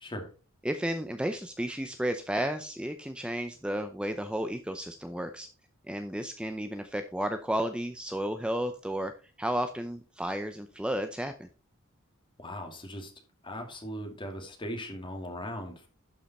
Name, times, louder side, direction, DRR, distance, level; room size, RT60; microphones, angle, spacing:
voice 1, 0.6-5.5 5.9-11.5, right 1 dB, 5° right, 7 dB, 0.6 m, -33 dB
voice 2, 12.4-13.1 13.4-15.9, equal, 25° left, 3 dB, 2.4 m, -39 dB
12.0 x 5.5 x 4.2 m, 0.35 s
head